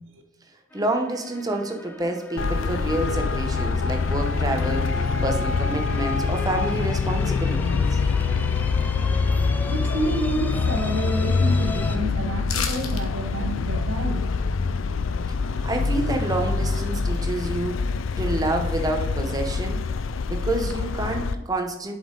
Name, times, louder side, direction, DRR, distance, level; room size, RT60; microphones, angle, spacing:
sound 1, 0.7-12.0, left 2 dB, 10° left, 0.4 m, -38 dB
voice 1, 0.7-8.0 11.8-11.9 15.6-19.8 20.3-21.9, right 2 dB, 20° right, 3 dB, 0.8 m, -28 dB
Traffic noise roadway noise, 2.4-21.3, left 4 dB, 70° left, 0.4 m, -25 dB
voice 2, 9.7-14.3, right 1 dB, 70° right, 2 dB, 1.2 m, -29 dB
sound 2, 12.5-13.0 13.4-13.5, left 7 dB, 90° left, 1.0 m, -29 dB
7.6 x 5.3 x 3.8 m, 1.0 s
head